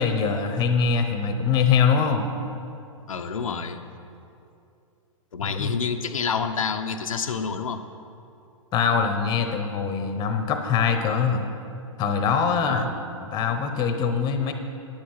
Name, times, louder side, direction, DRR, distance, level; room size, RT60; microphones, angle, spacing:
voice 1, 0.0-2.3 5.4-5.7 8.7-11.5 12.0-12.9 13.3-14.5, left 6 dB, 25° left, 7 dB, 0.9 m, -23 dB
voice 2, 3.1-3.8 5.3-7.8 12.7-13.0, left 5 dB, 80° left, 5 dB, 0.8 m, -28 dB
10.0 x 8.7 x 5.7 m, 2.6 s
hypercardioid pair, 125°, 17 cm